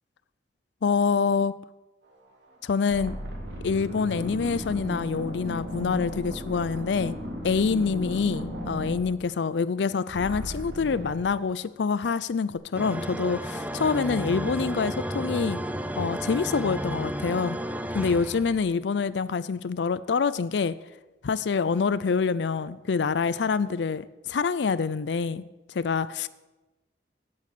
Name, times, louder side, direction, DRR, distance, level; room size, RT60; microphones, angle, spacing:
voice 1, 0.8-1.5 2.6-3.2 3.6-7.1 7.4-15.6 16.0-17.6 17.9-20.8 21.2-25.4 25.7-26.3, left 5 dB, 80° left, 17 dB, 0.4 m, -26 dB
sound 1, 2.2-2.5 2.9-9.8 10.1-11.2, equal, 85° right, 3.3 m, -35 dB
sound 2, 12.7-18.8, equal, 10° right, 0.7 m, -32 dB
16.0 x 8.5 x 6.7 m, 1.1 s
head